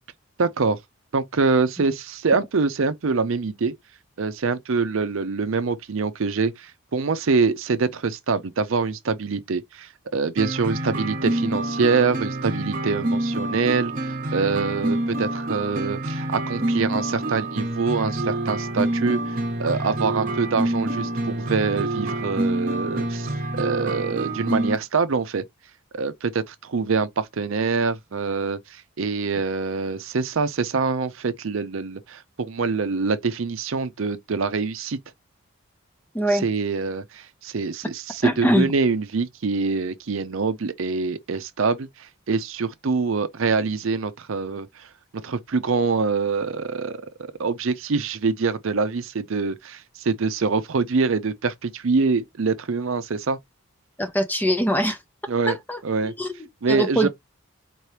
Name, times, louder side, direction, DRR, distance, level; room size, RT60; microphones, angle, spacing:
voice 1, 0.4-0.8 1.1-3.8 4.2-25.4 25.9-35.0 36.3-44.9 45.1-53.4 55.3-55.6 55.8-56.1 56.6-57.1, right 4 dB, 65° right, 0.5 m, -25 dB
sound 1, 10.4-24.8, right 1 dB, 40° right, 0.9 m, -27 dB
voice 2, 36.1-36.4 38.2-38.7 54.0-55.0 55.5-56.3 56.7-57.1, equal, 10° left, 0.5 m, -23 dB
4.5 x 2.9 x 3.2 m
head